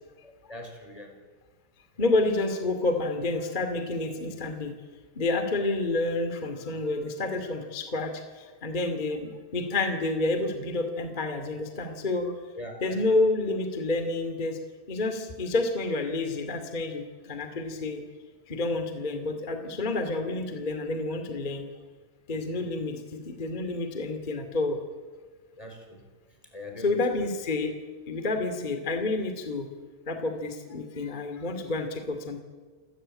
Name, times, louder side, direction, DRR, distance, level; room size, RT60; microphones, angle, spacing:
voice 1, 0.2-1.1 12.5-13.0 22.5-22.7 25.6-26.0 26.5-27.2, left 1 dB, 10° left, 4 dB, 4.1 m, -42 dB
voice 2, 2.0-4.7 5.1-12.3 12.8-14.6 14.9-18.0 18.5-21.7 22.3-24.8 26.8-27.7 28.1-29.7 30.0-32.4, left 2 dB, 35° left, 6 dB, 0.7 m, -29 dB
29.0 x 15.0 x 8.9 m, 1.4 s
omnidirectional pair, 5.5 m